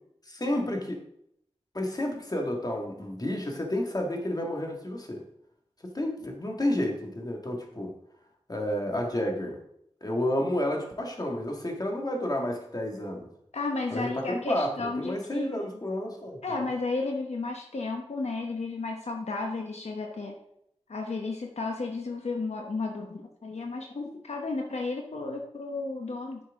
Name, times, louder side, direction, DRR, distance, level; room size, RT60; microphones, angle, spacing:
voice 1, 0.3-1.0 1.7-5.2 5.9-7.9 8.5-9.6 10.0-13.3 13.9-14.7 15.0-16.7, left 1 dB, 35° left, 1 dB, 1.9 m, -30 dB
voice 2, 13.5-15.6 16.4-20.4 20.9-26.4, left 3 dB, 80° left, 2 dB, 1.0 m, -33 dB
9.9 x 6.3 x 3.7 m, 0.76 s
wide cardioid pair, 55°, 11 cm